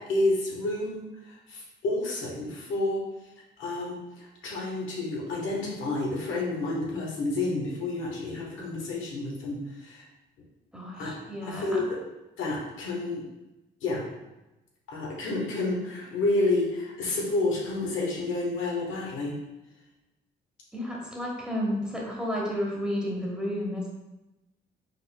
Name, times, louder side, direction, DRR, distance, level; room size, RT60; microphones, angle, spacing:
voice 1, 0.0-3.1 3.6-10.0 11.0-11.1 11.4-12.0 12.4-13.2 13.8-14.0 14.9-19.4, left 2 dB, 80° left, -3 dB, 1.3 m, -30 dB
voice 2, 10.7-11.8 20.7-23.9, equal, 5° right, -3 dB, 1.3 m, -31 dB
4.9 x 4.2 x 2.3 m, 0.98 s
cardioid pair, 90°, 20 cm